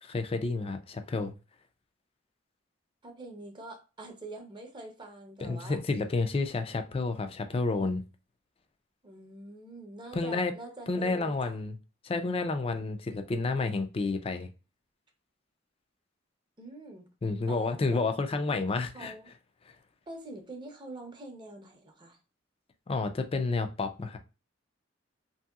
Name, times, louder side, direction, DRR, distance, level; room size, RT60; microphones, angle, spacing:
voice 1, 0.0-1.3 5.4-8.0 10.1-10.5 10.9-11.8 12.0-14.5 17.2-19.1 22.9-24.2, left 3 dB, 30° left, 0.4 m, -30 dB
voice 2, 3.0-5.8 9.0-11.6 16.6-17.1 17.5-18.1 18.5-18.6 18.9-19.3 20.1-22.2, right 2 dB, 25° right, 0.6 m, -45 dB
3.0 x 2.8 x 2.3 m
head